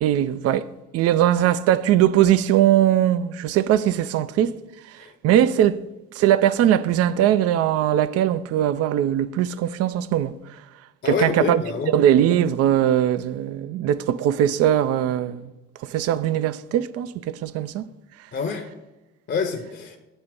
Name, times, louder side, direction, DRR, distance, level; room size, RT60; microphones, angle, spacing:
voice 1, 0.0-4.5 4.9-5.8 6.1-10.3 11.1-11.6 11.9-15.5 15.8-17.9, right 11 dB, 45° right, 0.4 m, -20 dB
voice 2, 11.0-11.9 18.3-18.7 19.3-20.0, left 5 dB, 35° left, 0.7 m, -27 dB
7.3 x 2.9 x 5.1 m
figure-of-eight pair, 50°, 34 cm